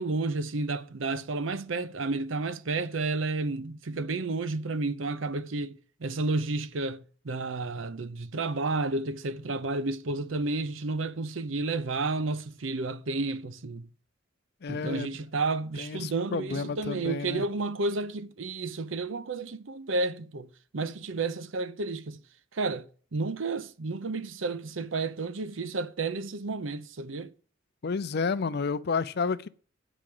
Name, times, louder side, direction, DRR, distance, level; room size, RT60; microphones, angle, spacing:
voice 1, 0.0-13.9 14.7-22.2 22.5-27.3, right 3 dB, 75° right, 0.7 m, -31 dB
voice 2, 14.6-15.1 15.8-17.5 27.8-29.5, left 5 dB, 55° left, 0.5 m, -31 dB
8.5 x 5.1 x 7.7 m
head